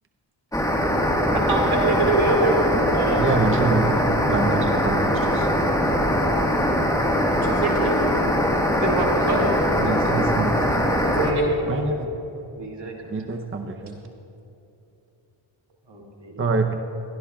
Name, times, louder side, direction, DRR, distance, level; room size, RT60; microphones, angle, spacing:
sound 1, 0.5-11.3, equal, 5° left, 1.4 m, -21 dB
voice 1, 1.3-2.7 2.9-3.2 7.3-8.2 9.3-9.4 11.0-12.0, right 2 dB, 85° right, -1 dB, 2.0 m, -24 dB
voice 2, 3.2-4.0 4.2-5.5 9.8-10.6 11.7-12.1 13.1-14.0 16.4-16.7, right 4 dB, 25° right, 4 dB, 0.7 m, -25 dB
voice 3, 8.8-9.5 12.6-13.3 15.9-16.5, right 1 dB, 55° right, -1 dB, 2.2 m, -30 dB
21.5 x 12.5 x 2.3 m, 2.9 s
cardioid pair, 65°, 49 cm